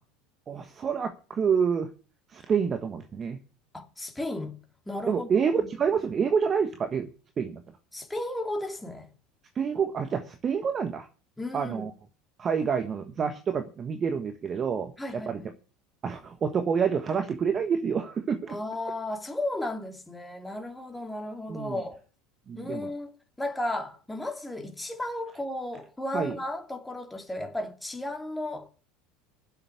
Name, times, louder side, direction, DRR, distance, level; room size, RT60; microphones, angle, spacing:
voice 1, 0.5-1.9 2.3-3.4 5.1-7.1 7.4-7.6 9.5-11.1 11.5-11.9 12.4-15.4 16.0-18.6 21.5-21.8 22.5-22.9 26.1-26.4, right 6 dB, 35° right, 1.4 m, -28 dB
voice 2, 3.7-4.6 4.9-5.3 5.6-5.7 7.9-9.1 11.4-11.8 15.0-15.5 18.5-22.0 22.6-23.1 23.4-28.7, left 1 dB, 10° left, 2.8 m, -34 dB
9.9 x 7.9 x 9.7 m
hypercardioid pair, 80°, 0 cm